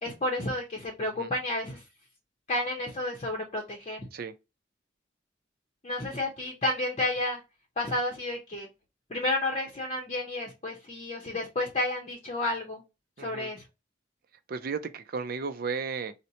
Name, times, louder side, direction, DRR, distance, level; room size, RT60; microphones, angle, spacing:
voice 1, 0.0-1.8 2.5-4.0 5.8-7.4 7.8-8.7 9.1-12.8 13.2-13.6, left 2 dB, 35° left, 0.7 m, -31 dB
voice 2, 1.0-1.3 4.1-4.3 13.2-13.5 14.5-16.1, right 5 dB, 55° right, 0.4 m, -34 dB
4.1 x 2.1 x 2.6 m
head